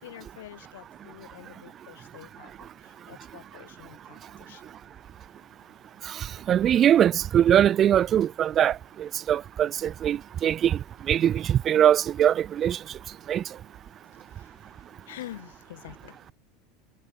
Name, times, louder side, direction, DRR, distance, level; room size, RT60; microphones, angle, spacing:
voice 1, 0.0-2.7 3.1-4.2 4.5-4.6 14.3-14.5 15.1-16.2, left 14 dB, 90° left, 6.0 m, -46 dB
voice 2, 6.1-10.8 11.1-12.8 13.3-13.4, right 10 dB, 35° right, 2.5 m, -22 dB
supercardioid pair, 120°, 0 cm